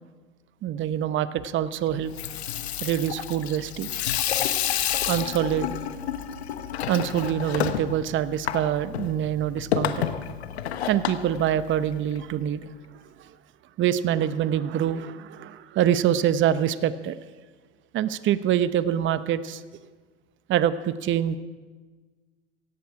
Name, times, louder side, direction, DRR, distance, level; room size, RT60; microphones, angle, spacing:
voice 1, 0.6-2.1 2.8-3.9 5.1-5.7 6.9-10.1 10.9-12.7 13.2-13.3 13.8-17.2 17.9-19.6 20.5-21.4, right 10 dB, 40° right, 14 dB, 0.9 m, -25 dB
Water tap faucet / Sink (filling or washing), 2.0-12.2, left 10 dB, 80° left, 1.1 m, -30 dB
17.5 x 16.5 x 4.9 m, 1.4 s
hypercardioid pair, 85°, 32 cm